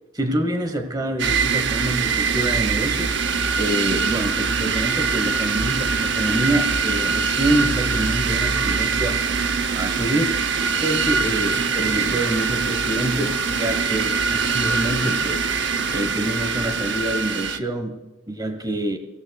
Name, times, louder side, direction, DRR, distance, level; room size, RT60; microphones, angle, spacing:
voice 1, 0.1-3.2 3.6-9.2 9.7-10.4 10.8-19.0, right 1 dB, 20° right, 1.1 m, -26 dB
sound 1, 1.2-17.6, right 5 dB, 55° right, 0.8 m, -23 dB
24.5 x 17.0 x 2.3 m
head